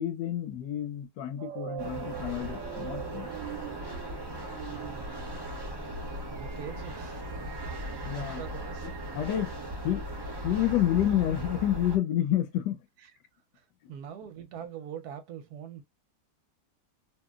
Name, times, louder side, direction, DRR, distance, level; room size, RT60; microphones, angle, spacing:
voice 1, 0.0-3.3 8.0-8.4 9.1-9.5 9.8-10.0 10.4-12.8, left 12 dB, 80° left, 1.2 m, -29 dB
sound 1, 1.4-10.3, right 13 dB, 90° right, 1.2 m, -44 dB
sound 2, 1.8-12.0, right 1 dB, 35° right, 0.4 m, -38 dB
voice 2, 4.7-5.4 6.3-7.3 7.9-8.9 13.0-13.1 13.5-15.8, right 8 dB, 70° right, 1.0 m, -43 dB
2.9 x 2.6 x 2.2 m
omnidirectional pair, 1.9 m